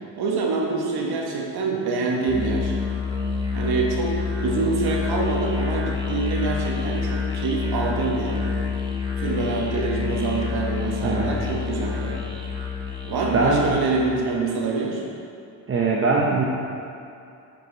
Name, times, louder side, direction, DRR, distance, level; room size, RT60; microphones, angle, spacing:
voice 1, 0.2-2.7 3.5-4.1 4.4-8.6 9.2-12.2 13.0-15.0, right 3 dB, 65° right, -1 dB, 1.7 m, -26 dB
Musical instrument, 2.3-14.0, left 5 dB, 10° right, 1.5 m, -27 dB
voice 2, 11.0-11.4 13.3-13.8 15.7-16.4, right 3 dB, 30° right, -3 dB, 0.9 m, -21 dB
9.9 x 5.9 x 4.1 m, 2.6 s
cardioid pair, 85°, 40 cm